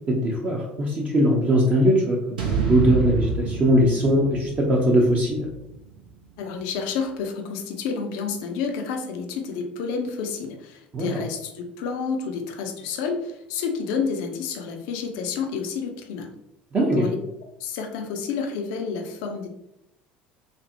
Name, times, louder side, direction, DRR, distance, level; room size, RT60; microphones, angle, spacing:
voice 1, 0.1-5.5 10.9-11.2 16.7-17.1, equal, 30° right, -3 dB, 0.6 m, -21 dB
sound 1, 2.4-6.6, right 5 dB, 75° right, 0.5 m, -29 dB
voice 2, 6.4-16.3 16.9-17.2 17.6-19.5, left 5 dB, 60° left, 4 dB, 0.4 m, -30 dB
3.3 x 2.0 x 2.6 m, 0.82 s
figure-of-eight pair, 65°, 5 cm